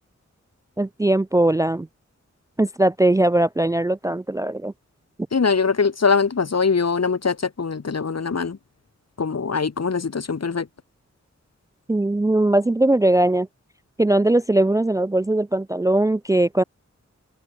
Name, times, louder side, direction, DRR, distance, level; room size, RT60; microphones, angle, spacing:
voice 1, 0.8-1.9 2.6-4.7 11.9-13.5 14.0-16.6, right 1 dB, 10° right, 0.4 m, -20 dB
voice 2, 5.3-8.6 9.2-10.7, left 5 dB, 60° left, 2.1 m, -22 dB
cardioid pair, 50°, 29 cm